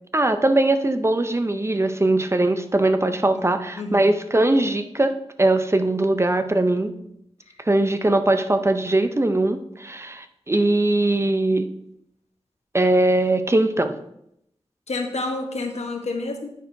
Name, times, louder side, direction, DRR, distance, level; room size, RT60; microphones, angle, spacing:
voice 1, 0.1-5.1 5.4-6.9 7.7-11.7 12.7-14.0, right 2 dB, 25° right, 9 dB, 0.6 m, -20 dB
voice 2, 3.0-4.1 14.9-16.5, left 2 dB, 80° left, 3 dB, 1.1 m, -30 dB
9.1 x 6.2 x 2.6 m, 0.77 s
wide cardioid pair, 60°, 11 cm